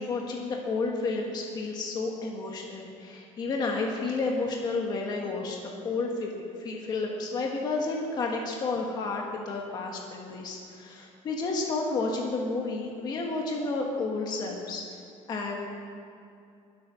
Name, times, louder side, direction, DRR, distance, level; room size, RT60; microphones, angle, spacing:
voice 1, 0.0-14.8 15.3-15.7, left 3 dB, 35° left, 0 dB, 1.5 m, -31 dB
21.5 x 8.5 x 6.3 m, 2.6 s
cardioid pair, 180°, 13 cm